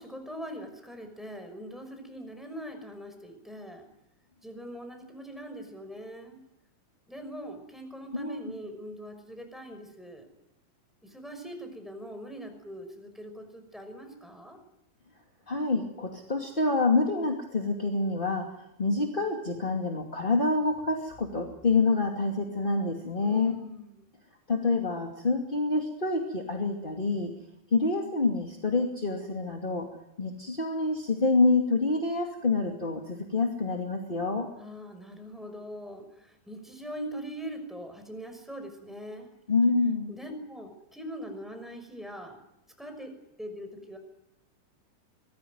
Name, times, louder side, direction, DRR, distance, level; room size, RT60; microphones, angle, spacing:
voice 1, 0.0-3.8 4.4-6.4 7.1-10.3 11.0-14.6 23.2-23.9 34.6-39.3 40.1-42.4 42.8-44.0, equal, ahead, 6 dB, 5.6 m, -42 dB
voice 2, 8.1-8.4 15.5-23.6 24.5-27.3 27.7-29.9 30.2-34.5 39.5-40.1, left 3 dB, 15° left, 2 dB, 2.0 m, -27 dB
25.0 x 20.0 x 9.5 m, 0.84 s
omnidirectional pair, 4.3 m